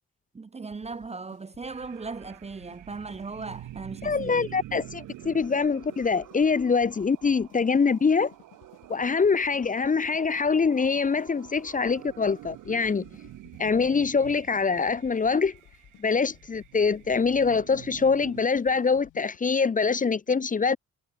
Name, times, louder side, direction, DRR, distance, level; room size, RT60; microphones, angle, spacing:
voice 1, 0.3-4.5, right 4 dB, 20° right, 0.8 m, -38 dB
sound 1, 0.7-19.4, left 15 dB, 90° left, 5.6 m, -57 dB
sound 2, 1.7-18.4, right 15 dB, 80° right, 1.8 m, -47 dB
voice 2, 4.0-8.3 8.9-13.0 13.6-15.5 16.0-20.8, left 5 dB, 25° left, 0.8 m, -24 dB
cardioid pair, 90°, 30 cm